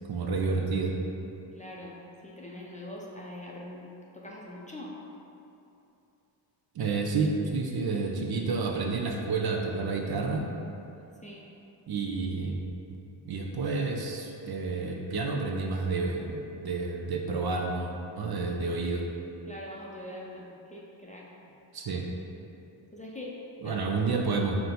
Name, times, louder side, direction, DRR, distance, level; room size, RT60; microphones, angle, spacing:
voice 1, 0.1-0.9 6.7-10.5 11.9-12.6 12.9-13.0 13.2-19.0 21.7-22.1 23.6-24.6, right 4 dB, 50° right, 1 dB, 0.5 m, -30 dB
voice 2, 1.5-2.0 2.2-3.9 4.1-5.0 11.2-11.5 19.5-21.3 22.9-24.6, left 1 dB, 15° left, -4 dB, 0.4 m, -43 dB
4.2 x 2.2 x 3.9 m, 2.7 s
cardioid pair, 60°, 48 cm